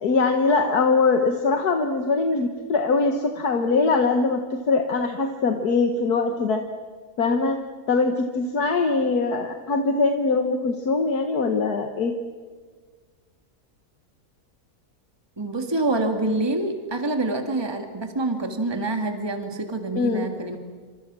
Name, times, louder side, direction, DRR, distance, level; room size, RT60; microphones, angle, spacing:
voice 1, 0.0-6.6 7.2-7.6 7.9-12.1 20.0-20.3, left 4 dB, 75° left, 4 dB, 1.9 m, -22 dB
voice 2, 15.4-20.6, right 2 dB, 15° right, 5 dB, 2.0 m, -26 dB
28.0 x 26.0 x 6.2 m, 1.5 s
omnidirectional pair, 1.7 m